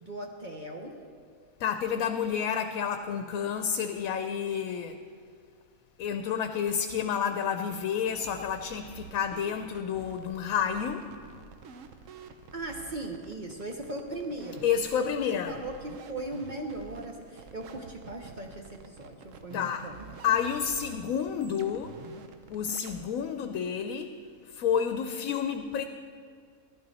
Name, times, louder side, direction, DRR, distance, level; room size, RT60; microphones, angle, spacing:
voice 1, 0.0-0.9 12.5-20.1, right 2 dB, 40° right, 1 dB, 0.9 m, -38 dB
voice 2, 1.6-5.0 6.0-11.1 14.6-15.6 19.5-19.9 20.2-22.0 22.5-24.2 24.4-25.8, left 8 dB, 90° left, 8 dB, 1.0 m, -30 dB
sound 1, 8.1-23.0, right 6 dB, 70° right, 1.1 m, -49 dB
12.0 x 12.0 x 4.1 m, 2.1 s
omnidirectional pair, 1.4 m